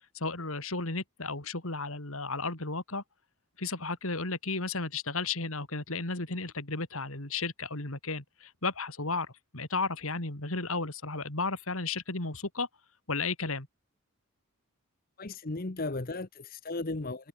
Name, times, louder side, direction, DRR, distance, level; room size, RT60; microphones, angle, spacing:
voice 1, 0.1-3.0 3.6-12.7 13.1-13.7, left 3 dB, 65° left, 3.8 m, -34 dB
voice 2, 15.2-17.3, left 2 dB, 40° left, 1.0 m, -35 dB
head